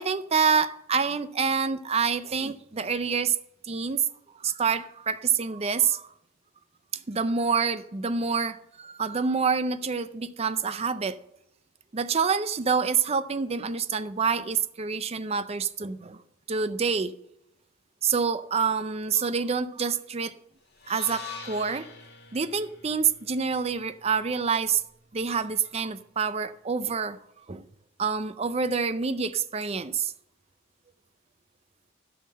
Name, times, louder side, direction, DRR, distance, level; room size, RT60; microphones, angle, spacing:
voice 1, 0.0-3.4 3.6-4.1 4.4-6.1 7.1-11.2 11.9-16.2 16.5-17.1 18.0-20.4 20.9-21.9 22.3-24.8 25.1-27.2 27.5-27.6 28.0-30.1, right 5 dB, 30° right, 0.5 m, -27 dB
sound 1, 20.7-24.9, left 5 dB, 55° left, 1.8 m, -44 dB
12.5 x 5.9 x 6.4 m
head